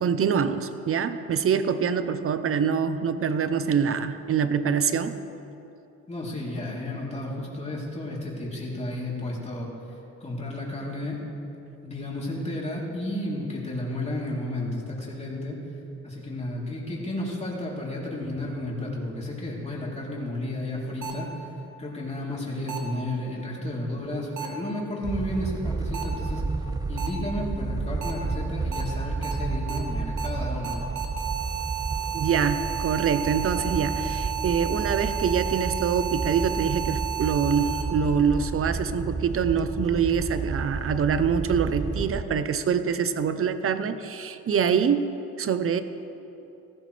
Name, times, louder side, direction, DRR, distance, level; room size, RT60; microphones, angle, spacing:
voice 1, 0.0-5.2 32.1-45.1 45.4-45.8, right 7 dB, 45° right, 11 dB, 0.8 m, -25 dB
voice 2, 6.1-9.7 10.2-11.3 11.8-15.6 16.0-21.3 21.8-26.4 26.9-30.8, left 1 dB, 20° left, -4 dB, 3.5 m, -32 dB
sound 1, 21.0-21.1 22.7-22.8 24.4-24.5 25.9-26.0 27.0-27.1 28.0-28.1 28.7-28.8 29.2-29.3 29.7-29.8 30.2-30.3 30.6-37.8, right 10 dB, 80° right, 1.7 m, -32 dB
sound 2, 25.0-42.2, right 4 dB, 15° right, 0.4 m, -31 dB
17.0 x 14.5 x 3.4 m, 2.8 s
cardioid pair, 90°, 30 cm